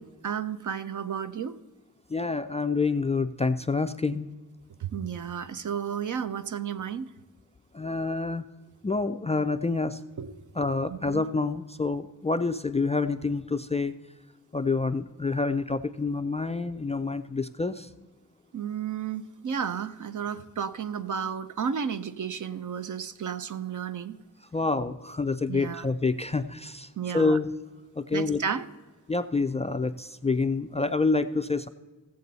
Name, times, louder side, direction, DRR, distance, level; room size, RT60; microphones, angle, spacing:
voice 1, 0.2-1.6 4.8-7.1 10.2-10.4 10.9-11.2 18.5-24.2 25.5-25.9 27.0-27.4 28.1-28.7, right 7 dB, 55° right, 12 dB, 0.7 m, -32 dB
voice 2, 2.1-4.3 7.7-8.4 8.8-10.0 10.6-13.9 14.5-17.9 24.5-27.5 28.0-28.4 29.1-31.7, left 3 dB, 20° left, 9 dB, 0.3 m, -27 dB
16.0 x 7.6 x 4.0 m, 1.3 s
wide cardioid pair, 100°, 36 cm